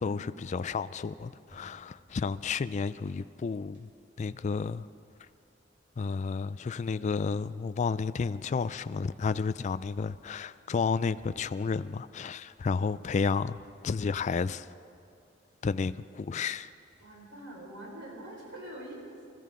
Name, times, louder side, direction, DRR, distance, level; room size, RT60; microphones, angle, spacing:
voice 1, 0.0-3.9 4.2-4.9 6.0-13.6 13.8-14.7 15.6-16.7, left 5 dB, 35° left, 0.3 m, -31 dB
sound 1, 1.5-9.4 9.6-18.4, equal, 40° right, 3.7 m, -63 dB
voice 2, 17.0-19.2, right 1 dB, 80° right, 5.1 m, -44 dB
26.0 x 14.0 x 3.8 m
head